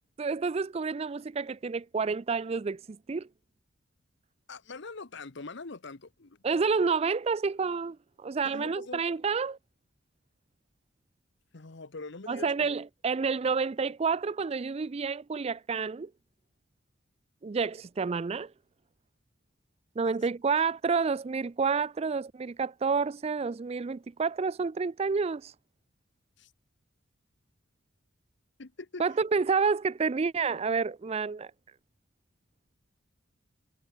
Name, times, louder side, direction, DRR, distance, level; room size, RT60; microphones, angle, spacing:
voice 1, 0.2-3.3 6.4-9.6 12.3-16.1 17.4-18.5 20.0-25.5 29.0-31.5, right 5 dB, 30° right, 0.4 m, -29 dB
voice 2, 4.5-6.4 8.4-9.0 11.5-12.7 20.0-20.1 26.4-26.5 28.6-29.0, left 3 dB, 60° left, 1.1 m, -43 dB
head